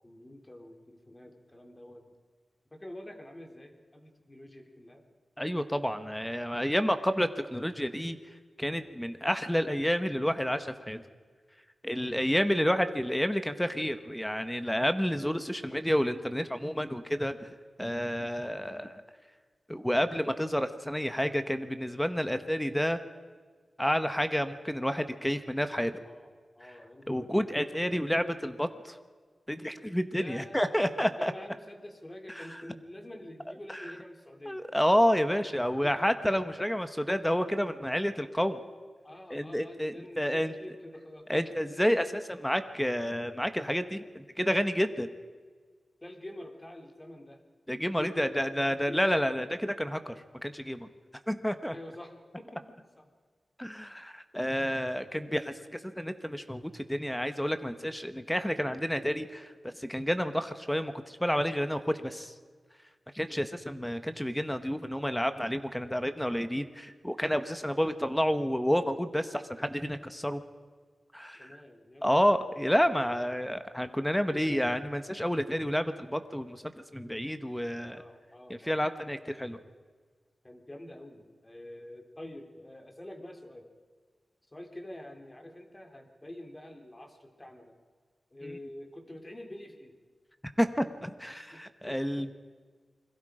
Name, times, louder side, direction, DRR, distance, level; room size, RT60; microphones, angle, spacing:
voice 1, 0.0-2.2 2.7-5.0 8.9-9.1 11.9-12.1 26.0-27.5 30.1-34.7 35.8-36.0 39.0-41.8 46.0-47.4 47.8-49.2 51.7-53.1 63.3-63.5 67.7-67.9 71.3-72.5 74.3-74.6 77.9-78.9 80.4-83.7 84.5-87.8 88.3-90.0 91.5-92.3, left 1 dB, 20° left, 4 dB, 3.4 m, -47 dB
voice 2, 5.4-8.2 8.6-11.0 11.8-17.5 17.8-19.0 19.7-23.0 23.8-25.9 27.1-29.0 29.5-31.3 32.3-32.6 33.7-33.8 34.5-38.6 39.3-40.5 41.3-45.1 47.7-50.2 50.4-50.9 51.3-51.7 53.6-62.3 63.1-70.4 71.1-71.6 72.0-78.0 78.5-79.6 88.4-88.6 90.6-92.3, equal, 5° left, 9 dB, 1.2 m, -30 dB
28.5 x 22.0 x 5.1 m, 1.5 s
wide cardioid pair, 85°, 0 cm